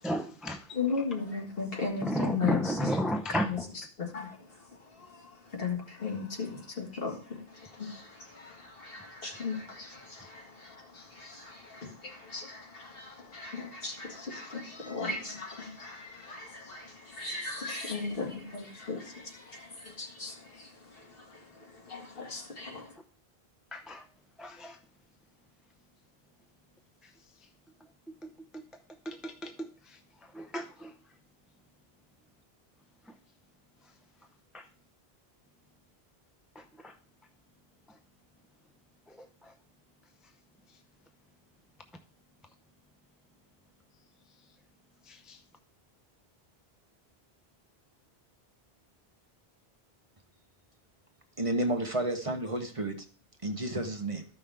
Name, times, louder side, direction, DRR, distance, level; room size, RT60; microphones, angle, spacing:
voice 1, 0.0-0.8 2.0-3.7 10.2-10.3 23.7-24.1 24.4-24.8 27.0-27.1 28.2-28.6 29.0-31.0 33.1-33.2 34.5-34.7 36.5-36.9 37.9-38.0 39.1-39.5 40.7-40.8 45.0-45.4, equal, ahead, 0.5 m, -34 dB
voice 2, 0.7-2.6 3.5-3.6 4.0-22.9, left 4 dB, 65° left, 2.0 m, -37 dB
voice 3, 51.4-53.0 53.4-54.2, right 1 dB, 35° right, 1.0 m, -31 dB
13.5 x 5.6 x 3.4 m
omnidirectional pair, 1.0 m